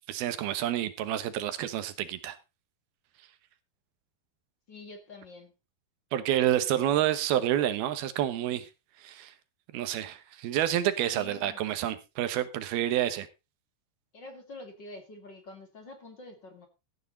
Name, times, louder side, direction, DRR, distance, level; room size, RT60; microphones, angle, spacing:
voice 1, 0.1-2.4 6.1-8.7 9.0-9.3 9.7-13.3, right 12 dB, 80° right, 3.1 m, -29 dB
voice 2, 4.7-5.5 11.1-11.6 14.1-16.7, left 2 dB, 35° left, 2.5 m, -46 dB
15.0 x 9.3 x 4.0 m
omnidirectional pair, 4.4 m